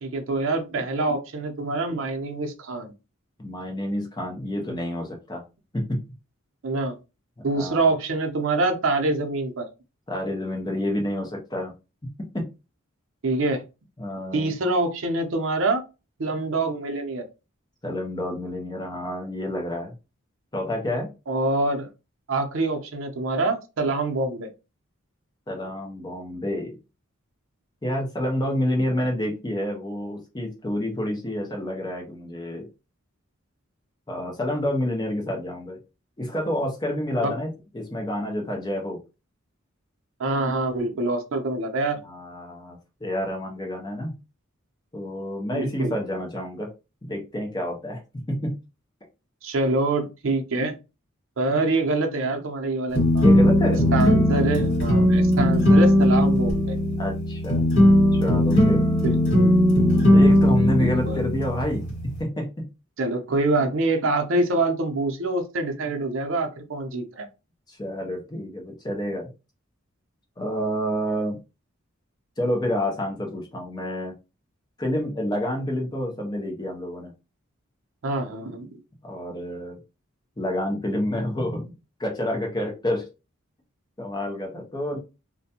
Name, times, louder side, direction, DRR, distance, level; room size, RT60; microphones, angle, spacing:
voice 1, 0.0-2.9 6.6-6.9 7.4-9.7 13.2-13.6 14.3-15.8 16.2-17.2 21.3-21.9 22.3-24.5 37.2-37.3 40.2-42.0 45.5-46.0 49.4-50.8 51.4-53.3 53.9-56.7 59.0-59.5 60.8-61.2 63.0-67.3 78.0-78.7, right 2 dB, 65° right, 5 dB, 0.6 m, -25 dB
voice 2, 3.4-5.4 5.7-6.0 7.5-7.9 10.1-11.7 12.3-12.5 14.0-14.5 17.8-19.9 20.5-21.1 25.5-26.8 27.8-32.7 34.1-35.8 36.2-39.0 42.0-44.1 44.9-46.7 47.0-48.0 48.4-48.5 53.2-53.8 57.0-57.7 58.2-58.8 60.1-61.8 62.2-62.4 67.7-69.3 70.4-71.4 72.4-74.1 74.8-77.1 79.0-79.8 80.4-81.7 82.0-83.1 84.0-85.0, left 1 dB, 20° left, 1 dB, 0.6 m, -28 dB
sound 1, 52.9-62.2, equal, 55° left, 1.5 m, -18 dB
2.5 x 2.2 x 2.7 m, 0.28 s
head